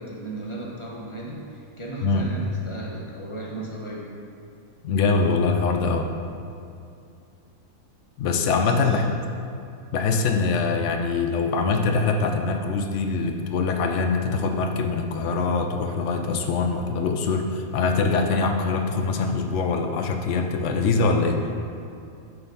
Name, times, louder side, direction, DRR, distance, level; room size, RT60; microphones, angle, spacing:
voice 1, 0.0-4.1 8.5-9.2, right 1 dB, 25° left, -4 dB, 0.8 m, -35 dB
voice 2, 4.8-6.1 8.2-9.1 9.9-21.4, left 4 dB, 75° left, 4 dB, 0.6 m, -23 dB
6.8 x 4.4 x 5.4 m, 2.5 s
omnidirectional pair, 1.7 m